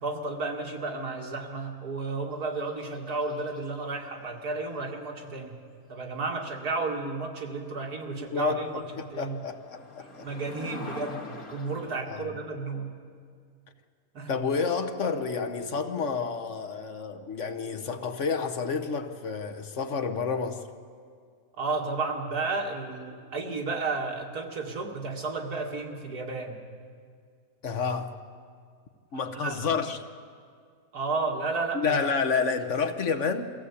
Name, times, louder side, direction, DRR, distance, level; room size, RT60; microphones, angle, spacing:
voice 1, 0.0-5.5 5.9-8.8 9.1-9.4 10.2-12.9 14.1-14.3 21.6-26.6 29.3-29.6 30.9-32.0, right 3 dB, 85° right, 2 dB, 2.5 m, -32 dB
sound 1, 2.3-3.8 7.4-7.5 8.0-8.1 8.2-12.0, left 3 dB, 70° left, 2.4 m, -44 dB
voice 2, 8.3-10.3 12.1-12.4 14.3-20.7 27.6-28.1 29.1-30.0 31.7-33.5, left 5 dB, 55° left, 8 dB, 1.3 m, -29 dB
23.0 x 15.5 x 8.3 m, 2.1 s
omnidirectional pair, 1.6 m